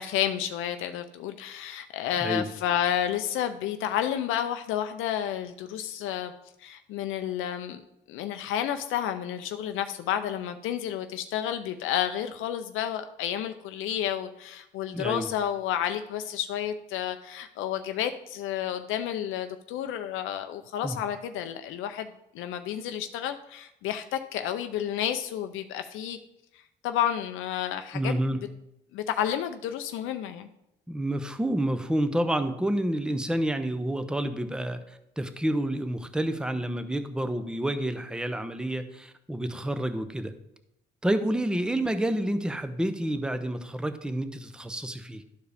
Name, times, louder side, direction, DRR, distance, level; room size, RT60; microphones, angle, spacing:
voice 1, 0.0-6.3 6.6-7.8 8.1-22.1 22.3-26.2 26.8-28.1 28.9-30.5, left 10 dB, 90° left, 8 dB, 0.5 m, -31 dB
voice 2, 14.9-15.3 20.8-21.0 27.9-28.4 30.9-34.8 35.2-40.3 41.0-45.2, right 1 dB, 5° right, 9 dB, 0.6 m, -29 dB
12.0 x 4.6 x 3.4 m, 0.83 s
cardioid pair, 90°, 20 cm